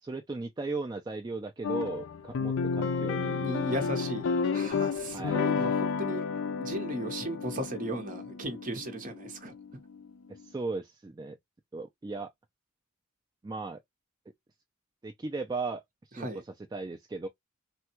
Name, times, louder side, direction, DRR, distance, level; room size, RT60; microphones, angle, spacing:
voice 1, 0.0-3.9 5.1-5.5 10.3-11.4 11.7-12.3 13.4-13.8 15.0-15.8 16.1-16.3 16.7-17.3, right 3 dB, 20° right, 0.3 m, -36 dB
sound 1, 1.6-10.1, left 5 dB, 70° left, 0.5 m, -31 dB
voice 2, 3.4-6.2 6.6-9.5 16.2-16.4, right 1 dB, 40° right, 0.9 m, -36 dB
3.4 x 2.2 x 2.9 m
head